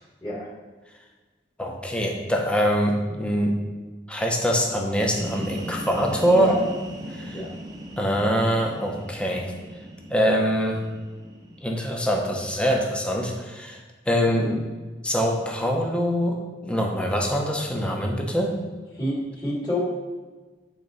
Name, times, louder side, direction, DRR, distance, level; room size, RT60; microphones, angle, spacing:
voice 1, 1.6-3.6 4.1-6.6 7.1-7.4 8.0-9.5 10.1-10.8 11.6-13.8 14.1-14.5 15.0-18.5, equal, 5° left, 0 dB, 0.8 m, -24 dB
sound 1, 4.8-12.4, equal, 20° right, 0.7 m, -38 dB
voice 2, 14.3-14.6 19.0-19.1 19.4-19.8, left 1 dB, 20° left, -7 dB, 1.9 m, -28 dB
8.2 x 3.9 x 4.0 m, 1.3 s
head